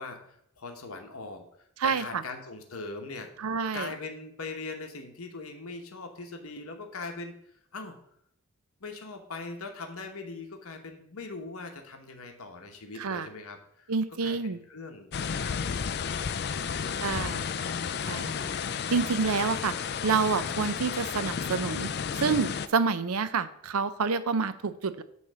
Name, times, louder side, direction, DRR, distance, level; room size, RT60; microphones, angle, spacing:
voice 1, 0.0-1.5 1.8-3.3 3.7-7.4 7.7-8.0 8.8-13.9 14.2-16.1 16.6-17.3, left 3 dB, 80° left, 4 dB, 1.1 m, -41 dB
voice 2, 1.8-2.2 3.4-3.9 13.0-13.3 13.9-14.6 17.0-17.7 18.1-18.5 18.9-19.7 20.0-21.9 22.2-25.0, right 5 dB, 85° right, 14 dB, 0.6 m, -28 dB
sound 1, 15.1-22.7, left 6 dB, 50° left, 0.4 m, -32 dB
9.5 x 3.3 x 6.6 m, 0.72 s
head